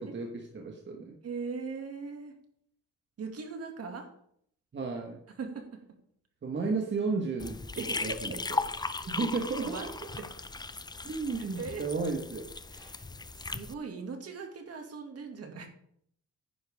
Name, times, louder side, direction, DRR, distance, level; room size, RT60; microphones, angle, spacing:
voice 1, 0.0-1.2 4.7-5.2 6.4-8.4 9.1-10.1 11.0-12.5, right 4 dB, 40° right, 1 dB, 1.6 m, -33 dB
voice 2, 1.2-2.3 3.2-4.1 5.4-5.7 7.8-8.2 9.0-9.1 9.6-9.9 10.2-10.3 11.6-11.8 12.7-13.1 13.4-15.7, right 5 dB, 55° right, 4 dB, 2.4 m, -40 dB
sound 1, 7.4-13.7, left 3 dB, 15° left, 0.6 m, -37 dB
10.5 x 9.9 x 3.7 m, 0.68 s
cardioid pair, 90°, 30 cm